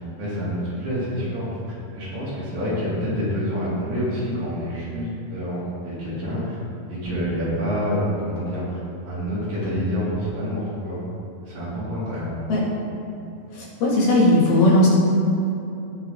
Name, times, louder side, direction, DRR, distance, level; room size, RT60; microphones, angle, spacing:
voice 1, 0.2-6.6 6.9-11.0 11.4-12.4, equal, 50° right, -9 dB, 4.1 m, -27 dB
voice 2, 13.5-14.9, left 1 dB, 85° left, -7 dB, 4.5 m, -17 dB
17.5 x 6.1 x 4.1 m, 2.9 s
omnidirectional pair, 4.1 m